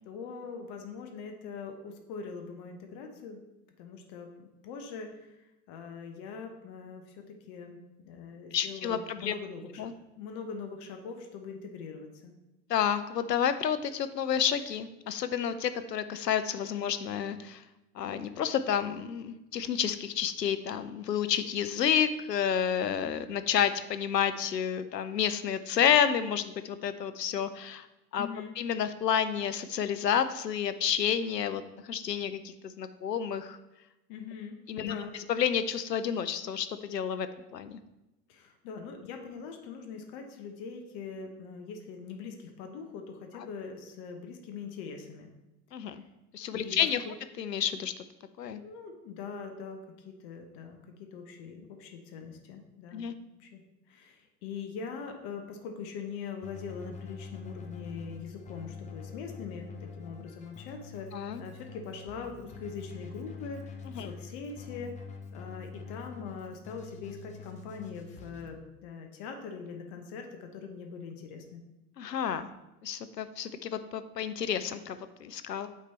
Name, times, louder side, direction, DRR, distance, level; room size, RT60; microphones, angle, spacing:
voice 1, 0.0-3.4 3.8-5.4 5.7-9.9 10.2-12.3 28.2-28.6 34.1-35.1 38.3-45.3 46.5-47.2 48.5-53.6 53.9-64.9 65.3-71.6, left 5 dB, 45° left, 4 dB, 1.0 m, -42 dB
voice 2, 8.5-9.3 9.8-9.9 12.7-17.6 18.0-27.9 28.1-28.3 28.6-33.6 34.7-37.3 37.5-37.8 45.7-46.0 46.3-47.0 47.4-47.9 48.4-48.6 52.9-53.1 61.1-61.4 64.0-64.1 72.0-72.5 72.8-75.7, left 8 dB, 85° left, 11 dB, 0.6 m, -30 dB
Keyboard (musical), 56.4-68.5, left 5 dB, 15° left, 0.7 m, -45 dB
8.5 x 3.3 x 4.2 m, 0.96 s
figure-of-eight pair, 85°, 49 cm